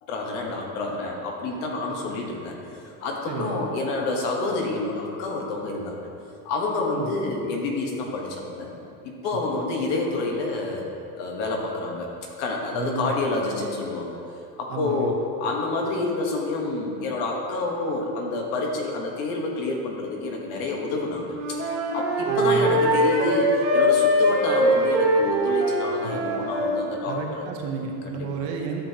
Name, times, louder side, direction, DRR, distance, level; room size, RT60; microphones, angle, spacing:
voice 1, 0.0-2.6 3.0-6.0 6.4-8.7 9.0-10.9 11.2-12.1 12.4-14.2 14.6-27.5 28.0-28.3, left 3 dB, 45° left, 0 dB, 1.2 m, -28 dB
voice 2, 3.3-3.6 6.9-7.1 9.3-9.4 12.7-13.1 14.7-15.1 22.3-22.8 26.0-26.2 27.0-28.8, right 5 dB, 40° right, 1 dB, 0.8 m, -32 dB
Wind instrument woodwind instrument, 21.3-26.8, equal, 25° right, 1.3 m, -22 dB
11.5 x 7.7 x 2.8 m, 2.6 s
supercardioid pair, 180°, 49 cm